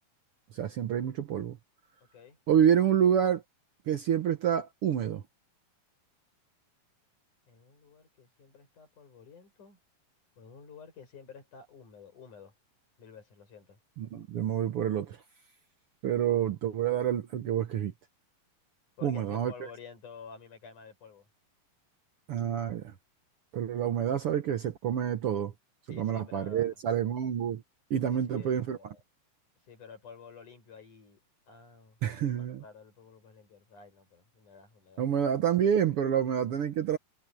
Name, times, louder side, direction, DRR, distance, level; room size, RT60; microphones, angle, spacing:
voice 1, 0.5-1.6 2.5-3.4 3.9-5.2 14.0-15.2 16.0-17.9 19.0-19.7 22.3-22.9 23.5-25.5 25.9-27.6 27.9-28.8 32.0-32.6 35.0-37.0, right 9 dB, 75° right, 1.3 m, -28 dB
voice 2, 7.5-9.8 10.4-12.5 13.0-13.8 19.0-21.3 25.9-26.8 28.1-29.0 29.6-31.2 31.5-32.0 32.4-35.1, left 6 dB, 60° left, 8.2 m, -51 dB
omnidirectional pair, 4.1 m